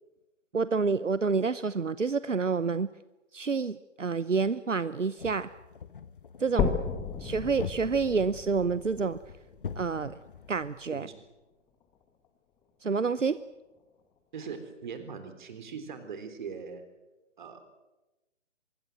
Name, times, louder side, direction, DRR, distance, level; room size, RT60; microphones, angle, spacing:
voice 1, 0.5-2.9 3.3-5.5 6.4-6.8 7.2-9.2 9.8-10.2 10.5-11.1 12.8-13.4, right 5 dB, 80° right, 16 dB, 0.9 m, -28 dB
sound 1, 5.2-10.8, left 6 dB, 45° left, 1.2 m, -44 dB
sound 2, 6.6-10.6 11.1-11.2 11.8-11.9 12.2-12.3 13.2-13.3, left 7 dB, 10° left, 1.6 m, -34 dB
voice 2, 14.3-16.8 17.4-17.6, right 6 dB, 40° right, 8 dB, 3.7 m, -40 dB
24.5 x 22.0 x 7.8 m, 1.1 s
figure-of-eight pair, 140°, 37 cm